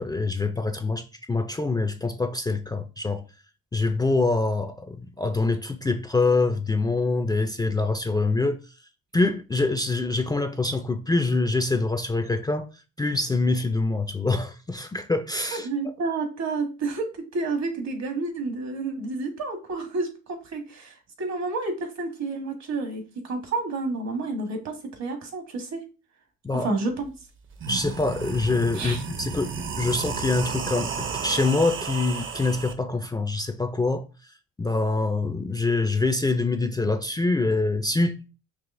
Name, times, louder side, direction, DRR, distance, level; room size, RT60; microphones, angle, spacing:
voice 1, 0.0-3.2 3.7-8.6 9.1-12.6 13.0-15.7 26.4-26.7 27.7-29.5 29.7-34.0 34.6-38.3, left 3 dB, 15° left, 0.4 m, -25 dB
voice 2, 15.5-25.9 26.5-27.1 28.7-29.0, right 3 dB, 65° right, 1.3 m, -30 dB
sound 1, 27.0-27.1 27.5-32.7, right 6 dB, 40° right, 0.6 m, -32 dB
4.8 x 2.8 x 2.5 m
cardioid pair, 90°, 30 cm